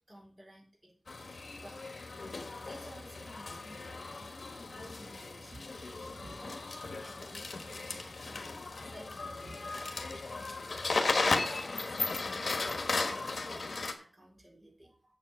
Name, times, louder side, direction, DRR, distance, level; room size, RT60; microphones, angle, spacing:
voice 1, 0.1-0.9 1.5-1.9 2.6-4.3 4.7-5.5 6.3-8.5 8.8-9.7 10.0-10.8 11.2-12.3 12.5-14.9, equal, 30° right, 0 dB, 4.3 m, -54 dB
sound 1, 1.1-13.9, left 3 dB, 80° left, 1.3 m, -36 dB
voice 2, 5.5-6.7 7.1-7.3 9.4-9.5 14.8-15.2, right 1 dB, 60° right, -2 dB, 2.7 m, -53 dB
7.6 x 7.5 x 6.1 m, 0.42 s
wide cardioid pair, 75°, 0 cm